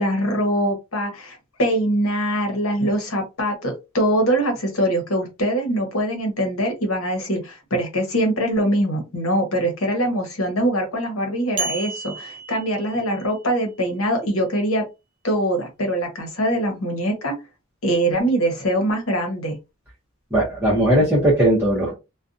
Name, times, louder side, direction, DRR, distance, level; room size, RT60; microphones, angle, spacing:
voice 1, 0.0-14.8 15.2-17.4 17.8-19.6, right 1 dB, 70° left, 1.0 m, -23 dB
sound 1, 11.6-13.4, right 5 dB, 90° right, 0.6 m, -32 dB
voice 2, 20.3-21.9, right 1 dB, 10° right, 0.7 m, -18 dB
2.5 x 2.2 x 2.5 m
head